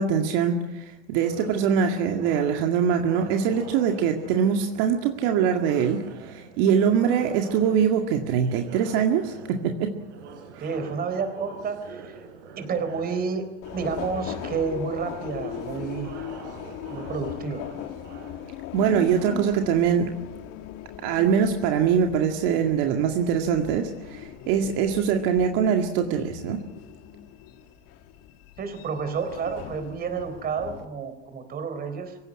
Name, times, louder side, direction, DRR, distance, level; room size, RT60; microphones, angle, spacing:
voice 1, 0.0-9.9 18.7-20.1 21.0-26.6, right 7 dB, 55° right, 4 dB, 2.1 m, -23 dB
sound 1, 1.2-19.3, right 5 dB, 80° right, 4.4 m, -45 dB
voice 2, 10.6-12.2 12.6-16.1 16.9-17.7 28.6-32.2, right 5 dB, 25° right, 10 dB, 3.9 m, -30 dB
Subway metro underground, 13.6-30.9, left 10 dB, 45° left, 1.9 m, -39 dB
25.0 x 16.5 x 9.8 m, 1.0 s
supercardioid pair, 145°, 35 cm